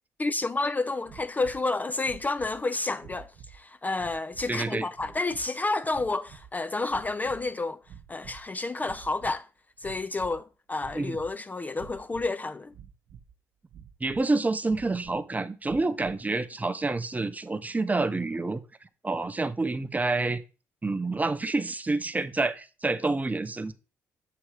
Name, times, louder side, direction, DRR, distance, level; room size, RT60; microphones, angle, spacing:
voice 1, 0.2-7.8 8.1-9.5 9.8-12.7, left 3 dB, 20° left, 0.4 m, -30 dB
sound 1, 1.0-1.7 2.0-2.6 3.0-3.6 4.0-4.6 4.9-5.5 5.9-6.6 6.9-7.5 7.8-8.5 8.8-9.4 9.8-10.4 10.8-11.3 11.7-12.3 12.7-13.3 13.7-14.3 14.7-15.2 15.6-16.2, right 8 dB, 70° right, 0.7 m, -49 dB
voice 2, 4.5-4.9 10.9-11.2 14.0-18.6 19.0-20.4 20.8-23.7, right 3 dB, 20° right, 0.7 m, -28 dB
7.8 x 2.8 x 4.9 m
supercardioid pair, 60°, 8 cm